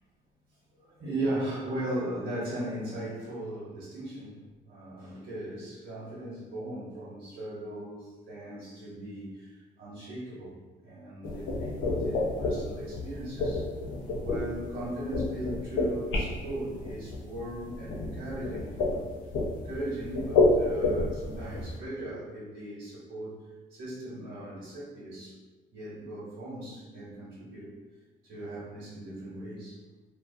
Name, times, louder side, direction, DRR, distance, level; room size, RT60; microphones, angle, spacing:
voice 1, 0.8-4.4 4.7-10.5 10.8-13.6 14.2-19.0 19.5-25.4 25.7-27.7 28.2-29.8, right 1 dB, 60° right, -8 dB, 0.9 m, -38 dB
sound 1, 11.2-21.8, left 2 dB, 80° left, 0.5 m, -30 dB
2.3 x 2.1 x 2.6 m, 1.2 s
cardioid pair, 90°, 20 cm